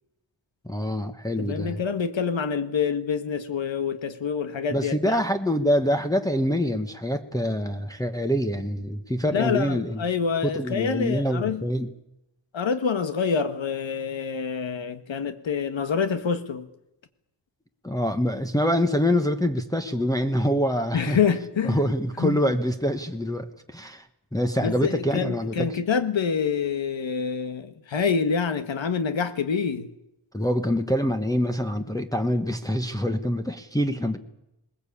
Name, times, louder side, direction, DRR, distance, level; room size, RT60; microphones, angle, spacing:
voice 1, 0.6-1.8 4.7-10.0 10.4-11.9 17.8-21.2 21.6-24.1 24.3-25.7 30.3-34.2, equal, 10° left, 1.2 m, -25 dB
voice 2, 1.4-5.2 9.3-11.6 12.5-16.7 20.9-21.8 22.2-22.4 24.6-29.9, left 6 dB, 85° left, 1.7 m, -26 dB
21.0 x 20.5 x 8.6 m
wide cardioid pair, 155°, 45 cm